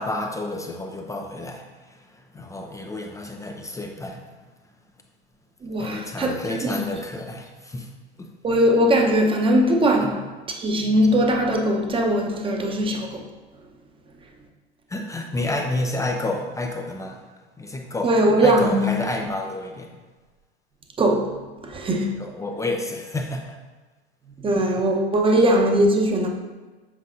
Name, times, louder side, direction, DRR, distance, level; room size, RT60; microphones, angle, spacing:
voice 1, 0.0-4.4 5.8-7.9 8.2-8.3 10.0-10.1 14.9-17.3 17.6-18.1 18.4-20.0 22.2-23.6, left 2 dB, 10° left, 0.5 m, -30 dB
voice 2, 5.6-6.3 6.6-6.9 8.4-13.2 18.0-18.9 21.0-21.4 21.6-22.1 24.4-26.3, right 1 dB, 15° right, 0.9 m, -20 dB
7.6 x 5.2 x 2.6 m
hypercardioid pair, 90°, 32 cm